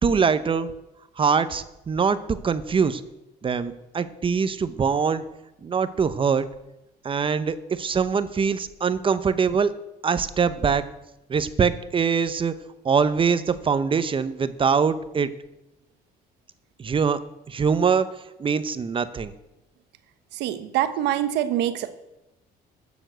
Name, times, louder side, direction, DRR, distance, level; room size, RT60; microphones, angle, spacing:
voice 1, 0.0-0.7 1.2-2.2 2.4-3.0 3.4-5.2 5.6-6.5 7.0-9.7 10.0-10.8 11.3-12.5 12.8-15.3 16.8-17.2 17.5-18.1 18.4-19.3, right 6 dB, 30° right, 13 dB, 0.8 m, -23 dB
voice 2, 20.3-21.9, right 12 dB, 85° right, 11 dB, 1.1 m, -25 dB
12.5 x 7.2 x 8.0 m, 0.95 s
cardioid pair, 110°, 17 cm